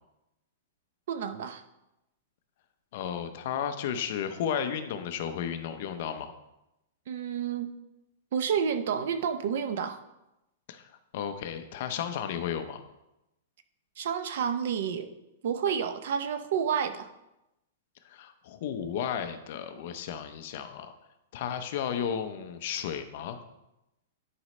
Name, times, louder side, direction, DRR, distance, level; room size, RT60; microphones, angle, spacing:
voice 1, 1.1-1.6 7.1-7.7 8.3-10.0 14.0-15.1 15.4-17.1, right 7 dB, 50° right, 10 dB, 0.6 m, -30 dB
voice 2, 2.9-6.3 10.7-12.8 18.0-20.9 21.3-23.4, left 8 dB, 40° left, 8 dB, 0.6 m, -33 dB
11.0 x 5.1 x 3.2 m, 0.92 s
supercardioid pair, 180°, 0 cm